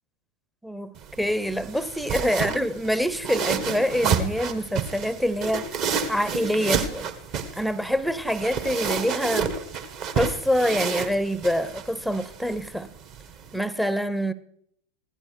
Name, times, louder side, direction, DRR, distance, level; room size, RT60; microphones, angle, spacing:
voice 1, 0.6-5.7 6.1-7.1 7.6-9.5 10.2-12.9 13.5-14.3, equal, ahead, 0.7 m, -26 dB
sound 1, 1.0-13.6, right 6 dB, 40° right, 1.3 m, -30 dB
16.0 x 11.5 x 4.6 m
figure-of-eight pair, 90°, 0 cm